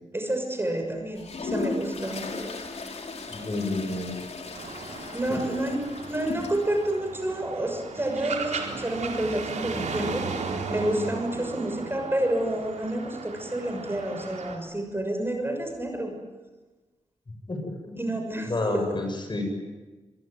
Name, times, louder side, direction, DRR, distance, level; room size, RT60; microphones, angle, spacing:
voice 1, 0.1-2.3 5.1-10.3 10.7-16.1 18.0-19.0, right 1 dB, 20° right, 4 dB, 6.3 m, -29 dB
Toilet flush, 1.2-7.0, left 3 dB, 60° left, 3.9 m, -36 dB
voice 2, 3.3-4.1 5.3-5.4 17.5-18.1 18.4-19.4, left 2 dB, 40° left, 5 dB, 7.8 m, -30 dB
sound 1, 4.5-14.6, right 4 dB, 75° right, 4.1 m, -36 dB
25.5 x 22.0 x 9.5 m, 1.2 s
cardioid pair, 60°, 12 cm